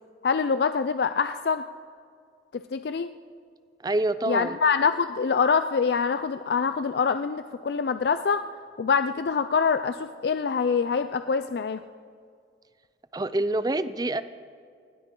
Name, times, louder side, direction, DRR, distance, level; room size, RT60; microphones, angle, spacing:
voice 1, 0.2-1.6 2.5-3.1 4.3-8.4 8.8-11.8, left 5 dB, 65° left, 10 dB, 0.4 m, -25 dB
voice 2, 3.8-4.6 13.1-14.2, right 2 dB, 20° right, 14 dB, 0.5 m, -26 dB
19.5 x 17.5 x 3.8 m, 2.2 s
head